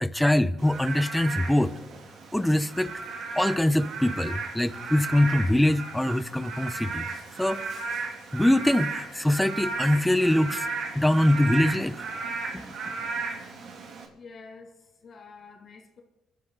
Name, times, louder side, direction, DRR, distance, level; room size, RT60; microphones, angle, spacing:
voice 1, 0.0-1.7 2.3-2.9 3.4-7.1 7.4-7.6 8.3-10.7 10.9-12.0 12.5-12.7, left 1 dB, 5° left, 0.7 m, -23 dB
Frog / Rain, 0.6-14.1, right 4 dB, 65° right, 2.8 m, -35 dB
voice 2, 14.2-16.0, left 4 dB, 50° left, 2.6 m, -48 dB
27.0 x 11.5 x 4.0 m
cardioid pair, 100°, 0 cm